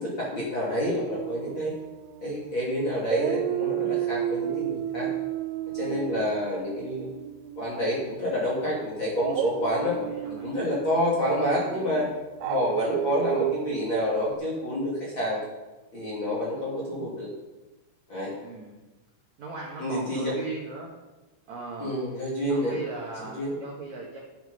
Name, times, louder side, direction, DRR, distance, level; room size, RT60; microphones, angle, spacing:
voice 1, 0.0-1.7 2.2-5.1 5.7-7.1 7.6-9.9 10.4-12.1 12.4-15.4 15.9-17.3 18.1-18.3 19.8-20.3 21.8-22.7 23.3-23.6, equal, 30° left, -6 dB, 2.6 m, -28 dB
Dog, 1.1-2.6 3.0-8.1 9.1-14.3, right 13 dB, 85° right, 3.1 m, -32 dB
voice 2, 5.8-6.3 9.8-10.6 18.4-18.8 19.4-20.9 21.5-22.0 22.5-24.2, right 4 dB, 65° right, -2 dB, 1.8 m, -38 dB
13.5 x 8.0 x 5.5 m, 1.1 s
omnidirectional pair, 5.7 m